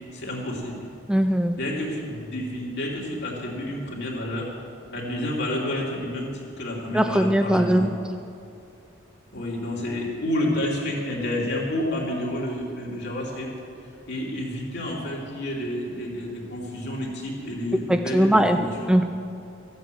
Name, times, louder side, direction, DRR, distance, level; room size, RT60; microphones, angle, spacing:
voice 1, 0.1-0.8 1.5-4.5 4.9-7.9 9.3-13.5 14.1-18.9, left 1 dB, 55° left, -3 dB, 2.9 m, -29 dB
voice 2, 1.1-1.6 6.9-7.9 17.9-18.6 18.9-19.1, right 1 dB, 5° right, 6 dB, 0.3 m, -20 dB
14.5 x 8.3 x 7.7 m, 2.6 s
head